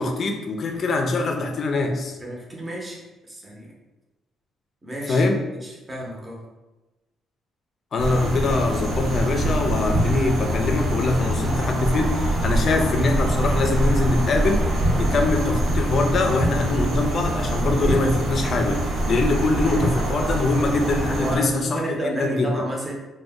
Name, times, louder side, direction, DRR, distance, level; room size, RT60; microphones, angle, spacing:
voice 1, 0.0-2.2 5.1-5.4 7.9-14.6 15.0-22.5, left 3 dB, 55° left, 4 dB, 0.4 m, -23 dB
voice 2, 2.2-3.7 4.8-5.2 5.6-6.4 20.2-20.5 21.2-22.9, right 1 dB, 20° right, -2 dB, 0.7 m, -32 dB
sound 1, 8.0-21.4, right 1 dB, 75° right, 1.0 m, -24 dB
2.5 x 2.2 x 3.4 m, 1.1 s
cardioid pair, 90°, 0 cm